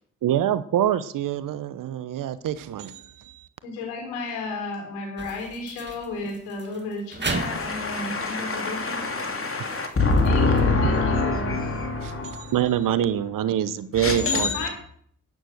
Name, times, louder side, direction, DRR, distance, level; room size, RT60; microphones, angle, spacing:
voice 1, 0.2-3.5 12.0-14.5, right 10 dB, 60° right, 0.9 m, -25 dB
voice 2, 3.6-9.1 10.2-11.7 14.5-14.7, left 3 dB, 85° left, 4.1 m, -33 dB
sound 1, 5.2-10.6, right 3 dB, 30° right, 2.2 m, -36 dB
voice 3, 7.2-12.5 14.0-14.7, left 3 dB, 35° left, 3.1 m, -25 dB
11.5 x 9.5 x 6.4 m
hypercardioid pair, 45°, 36 cm